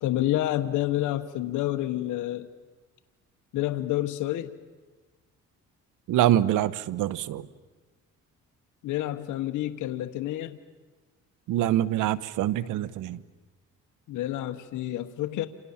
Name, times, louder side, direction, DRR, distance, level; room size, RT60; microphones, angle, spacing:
voice 1, 0.0-2.5 3.5-4.5 8.8-10.6 14.1-15.5, left 14 dB, 85° left, 1.2 m, -29 dB
voice 2, 6.1-7.5 11.5-13.2, right 12 dB, 90° right, 1.1 m, -25 dB
28.5 x 27.0 x 7.3 m
cardioid pair, 90°, 30 cm